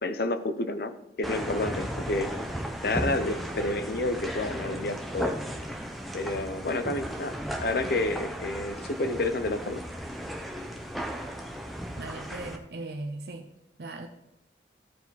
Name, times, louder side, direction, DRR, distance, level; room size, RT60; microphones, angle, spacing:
voice 1, 0.0-2.4 2.8-5.4 6.1-9.8, left 2 dB, 60° left, 0.6 m, -30 dB
sound 1, 1.2-12.6, equal, ahead, 0.7 m, -35 dB
voice 2, 12.0-13.5 13.8-14.1, right 2 dB, 60° right, 0.6 m, -38 dB
14.0 x 4.8 x 4.0 m
head